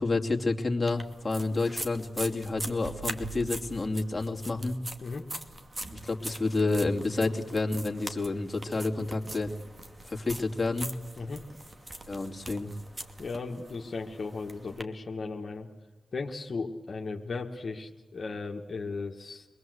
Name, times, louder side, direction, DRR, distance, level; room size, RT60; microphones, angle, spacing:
voice 1, 0.0-4.8 5.9-9.5 10.1-10.9 12.1-12.7, left 3 dB, 30° left, 1 dB, 2.8 m, -29 dB
sound 1, 0.9-14.8, right 2 dB, 30° right, 2.4 m, -42 dB
voice 2, 13.2-15.7 16.1-19.5, left 4 dB, 55° left, 0 dB, 1.8 m, -36 dB
25.5 x 21.0 x 8.0 m, 1.2 s
cardioid pair, 55°, 0 cm